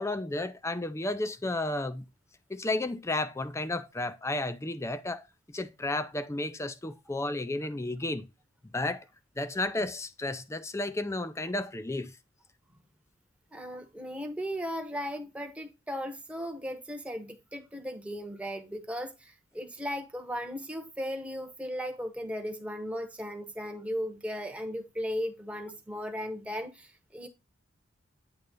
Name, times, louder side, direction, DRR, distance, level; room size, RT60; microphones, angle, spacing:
voice 1, 0.0-2.0 2.5-8.3 8.7-9.0 9.4-12.1, left 2 dB, 15° left, 0.4 m, -32 dB
voice 2, 13.5-27.3, equal, 5° right, 0.9 m, -36 dB
8.8 x 3.2 x 5.2 m
head